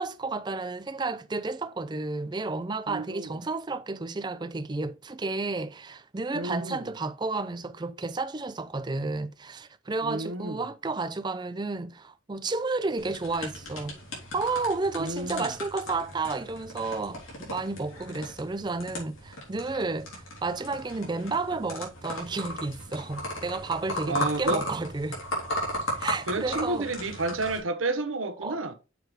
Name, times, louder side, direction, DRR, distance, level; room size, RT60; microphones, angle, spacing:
voice 1, 0.0-14.0 14.3-20.1 20.4-25.2 26.0-26.9 28.4-28.6, right 3 dB, 20° right, 0.4 m, -32 dB
voice 2, 2.9-3.4 6.3-6.9 10.0-10.7 15.0-15.5 24.1-24.6 26.3-28.7, right 2 dB, 80° right, 1.0 m, -31 dB
sound 1, 13.0-27.6, left 1 dB, 85° left, 3.3 m, -36 dB
6.7 x 4.7 x 4.6 m
head